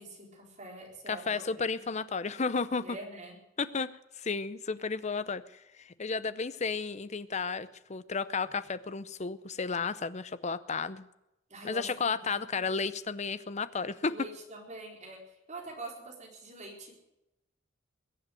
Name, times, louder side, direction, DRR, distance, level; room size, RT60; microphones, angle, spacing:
voice 1, 0.0-1.9 2.8-3.4 11.5-12.3 12.6-12.7 14.1-16.9, right 2 dB, 35° right, 0 dB, 4.2 m, -45 dB
voice 2, 1.1-3.0 3.6-3.9 4.2-5.4 5.8-11.1 11.6-14.1, left 4 dB, 35° left, 15 dB, 0.6 m, -33 dB
21.5 x 7.9 x 7.8 m, 0.89 s
head